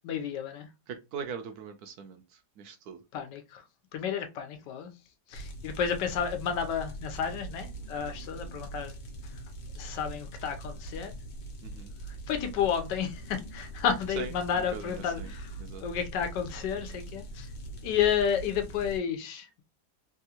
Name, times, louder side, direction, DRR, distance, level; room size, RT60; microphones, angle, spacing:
voice 1, 0.0-0.7 3.1-3.6 3.9-4.9 5.3-8.9 9.2-9.4 9.8-11.1 12.1-17.5 17.8-19.6, left 8 dB, 85° left, 1.3 m, -31 dB
voice 2, 0.9-3.0 11.6-12.0 14.2-14.3 14.7-15.3 15.6-15.8, right 6 dB, 70° right, 1.0 m, -41 dB
sound 1, 5.3-19.0, right 2 dB, 65° left, 1.3 m, -42 dB
3.5 x 2.4 x 2.8 m
omnidirectional pair, 1.9 m